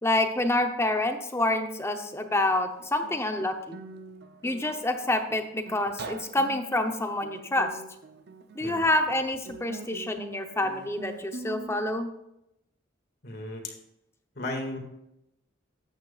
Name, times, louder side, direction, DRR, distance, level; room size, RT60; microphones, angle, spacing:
voice 1, 0.0-3.8 4.4-7.7 8.6-12.1, left 1 dB, 15° left, 6 dB, 0.8 m, -27 dB
Guitar, 2.5-11.9, right 3 dB, 60° right, 0.7 m, -44 dB
voice 2, 13.2-13.7 14.4-14.8, left 2 dB, 60° left, 2 dB, 2.1 m, -35 dB
13.5 x 8.9 x 2.4 m, 0.84 s
head